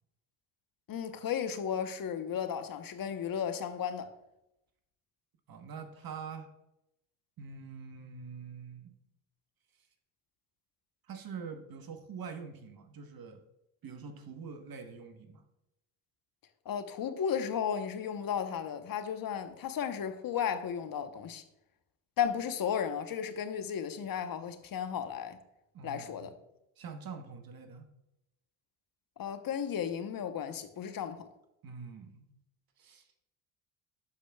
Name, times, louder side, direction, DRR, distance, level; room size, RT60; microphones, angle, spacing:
voice 1, 0.9-4.1 16.7-21.4 22.2-25.4 25.8-26.3 29.2-31.3, left 8 dB, 45° left, 0.9 m, -34 dB
voice 2, 5.5-6.5 7.4-8.9 11.1-13.4 13.8-15.4 25.7-26.3 26.8-27.9 31.6-32.2 32.8-33.1, right 5 dB, 45° right, 1.2 m, -45 dB
12.5 x 5.0 x 2.3 m
hypercardioid pair, 65°, 49 cm